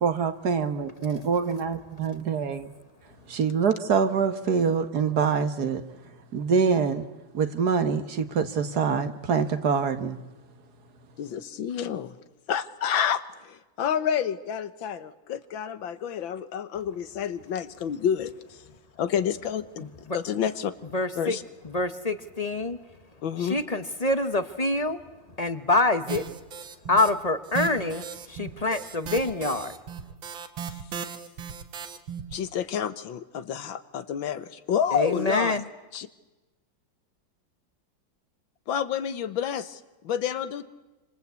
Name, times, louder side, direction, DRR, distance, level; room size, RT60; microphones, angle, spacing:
voice 1, 0.0-2.7 3.3-5.8 6.3-7.1 7.3-10.2, right 6 dB, 55° right, 10 dB, 1.8 m, -25 dB
voice 2, 11.2-12.2 12.5-18.6 19.0-20.7 21.2-21.4 23.2-23.6 30.6-30.7 32.3-35.6 35.9-36.1 38.7-40.6, left 8 dB, 90° left, 12 dB, 1.9 m, -29 dB
voice 3, 19.8-20.2 20.9-21.4 21.7-22.8 23.4-25.0 25.4-26.2 26.9-29.7 34.9-35.6, left 2 dB, 25° left, 11 dB, 0.9 m, -26 dB
sound 1, 26.1-27.1 27.4-32.4, right 7 dB, 90° right, 2.2 m, -37 dB
27.0 x 26.0 x 8.3 m, 1.1 s
omnidirectional pair, 2.1 m